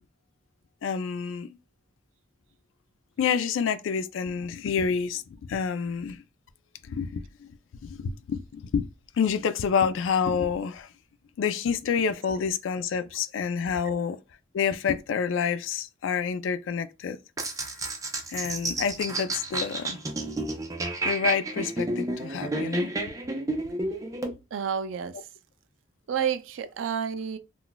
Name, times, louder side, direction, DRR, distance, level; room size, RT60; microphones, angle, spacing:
voice 1, 0.8-1.5 3.2-6.2 6.9-7.5 7.8-8.9 9.2-10.9 11.4-14.2 14.5-17.2 18.3-20.0 21.0-22.9, left 6 dB, 80° left, 0.3 m, -28 dB
sound 1, 17.4-24.3, right 2 dB, 15° right, 0.5 m, -31 dB
voice 2, 24.5-25.1 26.1-27.4, right 7 dB, 85° right, 0.4 m, -29 dB
2.3 x 2.2 x 3.8 m
head